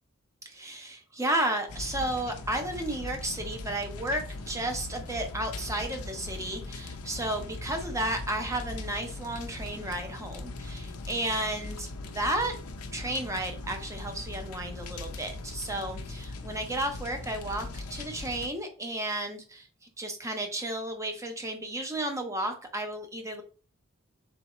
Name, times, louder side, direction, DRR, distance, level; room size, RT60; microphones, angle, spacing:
voice 1, 0.4-12.5 12.9-23.4, right 1 dB, 15° right, 5 dB, 0.6 m, -33 dB
sound 1, 1.7-18.5, left 2 dB, 90° left, 0.6 m, -40 dB
4.0 x 3.5 x 3.0 m, 0.37 s
head